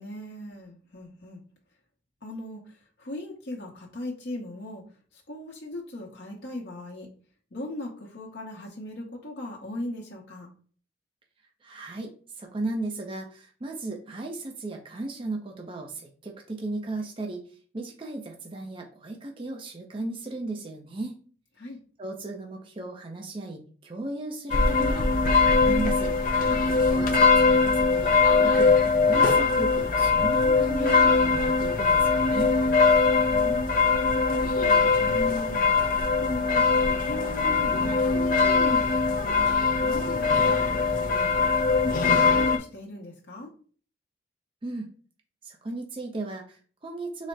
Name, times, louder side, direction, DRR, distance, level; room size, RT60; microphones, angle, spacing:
voice 1, 0.0-1.4 2.2-4.8 5.1-7.1 7.5-10.5 21.6-21.8 33.3-35.8 36.2-41.3 41.6-43.5, left 1 dB, 65° left, -2 dB, 0.9 m, -38 dB
voice 2, 11.6-12.1 12.4-17.4 17.7-21.2 22.0-26.1 26.9-32.5 44.6-44.9 45.4-47.3, right 2 dB, 30° right, 2 dB, 0.5 m, -36 dB
sound 1, 24.5-42.6, left 4 dB, 45° left, 0.5 m, -22 dB
4.0 x 2.1 x 4.5 m, 0.42 s
head